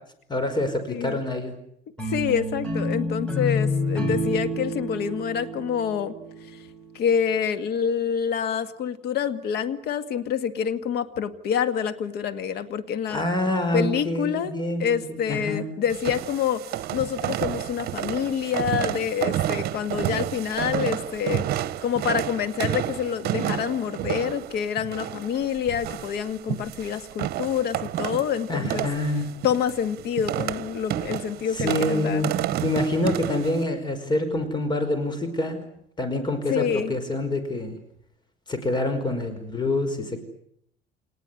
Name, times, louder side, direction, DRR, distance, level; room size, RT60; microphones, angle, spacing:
voice 1, 0.3-1.6 13.1-15.7 28.5-29.3 31.5-32.3 32.6-35.7 36.0-37.8 38.5-40.2, left 1 dB, 25° left, 9 dB, 5.0 m, -26 dB
voice 2, 0.9-1.2 2.1-6.1 6.9-13.2 13.7-14.5 14.8-16.6 16.9-21.4 21.8-28.9 29.4-32.3 36.5-36.9, left 8 dB, 70° left, 11 dB, 1.9 m, -27 dB
sound 1, 2.0-7.1, left 1 dB, 5° left, 6.4 m, -29 dB
sound 2, 15.9-33.6, right 12 dB, 65° right, 1.0 m, -30 dB
27.0 x 19.5 x 9.8 m, 0.74 s
cardioid pair, 110°, 17 cm